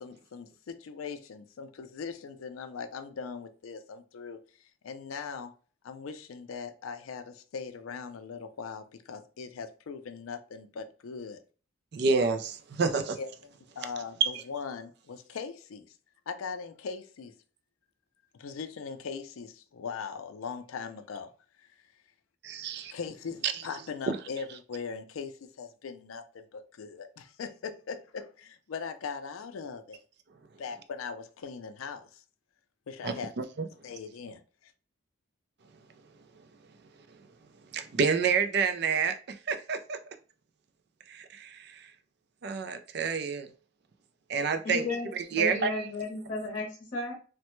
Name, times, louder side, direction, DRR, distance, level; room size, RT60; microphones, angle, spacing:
voice 1, 0.0-5.5 5.8-11.4 13.1-16.0 16.3-17.3 18.3-21.3 21.6-21.8 22.9-30.0 30.6-32.2 32.9-33.3 33.8-34.7, left 5 dB, 90° left, 0.4 m, -40 dB
voice 2, 11.9-13.2 14.2-14.4 22.4-22.9 23.4-23.5 24.1-24.2 33.0-33.7 37.7-40.0 41.1-41.8 42.4-43.5 44.3-44.8 45.1-45.7, right 5 dB, 50° right, 0.4 m, -28 dB
voice 3, 44.6-45.1 45.4-47.1, left 3 dB, 35° left, 0.7 m, -33 dB
3.2 x 2.1 x 3.0 m
head